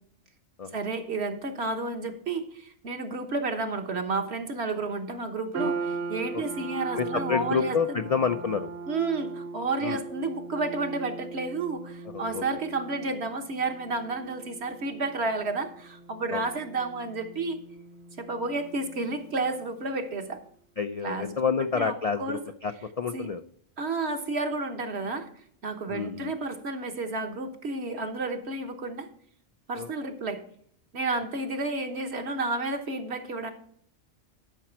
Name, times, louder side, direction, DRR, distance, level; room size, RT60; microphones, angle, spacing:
voice 1, 0.7-8.0 8.9-17.6 18.2-20.4 21.0-22.4 23.1-23.3 23.8-25.3 25.6-29.1 29.7-30.4 30.9-33.5, right 3 dB, 55° right, 6 dB, 1.4 m, -31 dB
sound 1, 5.5-20.0, right 4 dB, 85° right, 3.9 m, -39 dB
voice 2, 6.9-8.7 9.8-10.0 12.1-12.5 16.3-16.4 20.8-23.4 25.9-26.3 29.7-29.9, left 6 dB, 75° left, 8 dB, 0.3 m, -29 dB
12.0 x 5.9 x 4.4 m, 0.65 s
omnidirectional pair, 1.3 m